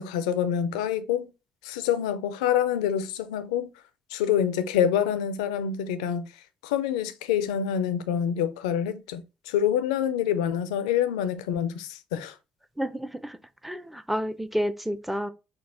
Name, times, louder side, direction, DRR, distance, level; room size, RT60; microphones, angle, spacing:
voice 1, 0.0-1.3 1.6-3.7 4.1-6.3 6.6-12.3, left 9 dB, 75° left, 0.5 m, -26 dB
voice 2, 12.8-13.4 13.6-15.3, equal, 5° right, 0.6 m, -30 dB
6.1 x 2.4 x 3.4 m
figure-of-eight pair, 45°, 4 cm